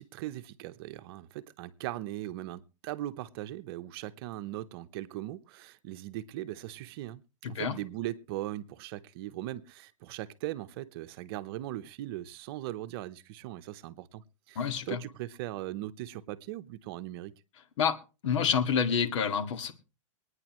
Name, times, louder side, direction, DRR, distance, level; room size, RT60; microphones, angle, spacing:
voice 1, 0.0-17.3, right 14 dB, 50° right, 0.9 m, -39 dB
voice 2, 7.4-7.8 14.6-15.0 17.8-18.0 18.2-19.7, left 7 dB, 65° left, 2.1 m, -28 dB
24.0 x 9.8 x 3.1 m
hypercardioid pair, 145°, 17 cm